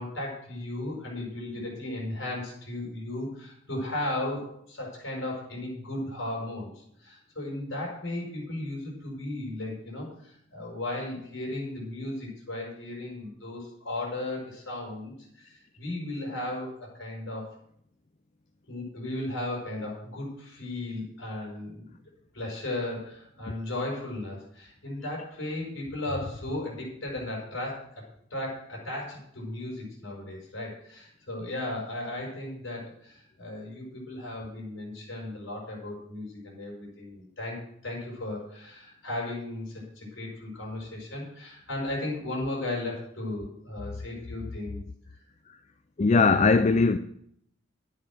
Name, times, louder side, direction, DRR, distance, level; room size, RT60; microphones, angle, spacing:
voice 1, 0.0-17.5 18.7-22.0 22.3-28.0 28.3-44.8, left 1 dB, 60° left, 6.1 m, -35 dB
voice 2, 46.0-47.0, left 4 dB, 35° left, 0.4 m, -20 dB
11.5 x 9.5 x 6.3 m
head